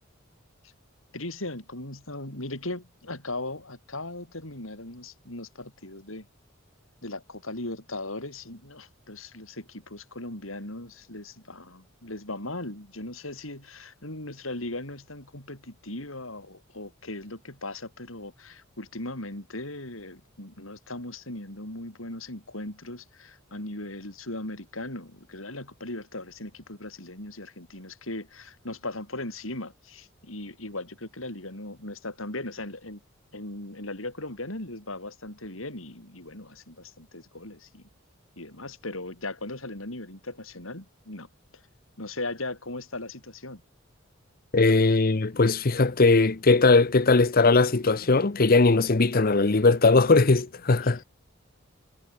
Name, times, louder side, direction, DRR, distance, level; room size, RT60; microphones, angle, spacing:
voice 1, 1.1-6.3 7.0-33.0 33.3-37.8 38.4-41.3 42.0-43.6 50.8-51.1, left 2 dB, 80° left, 7.0 m, -38 dB
voice 2, 44.5-51.0, left 3 dB, 45° left, 0.8 m, -20 dB
head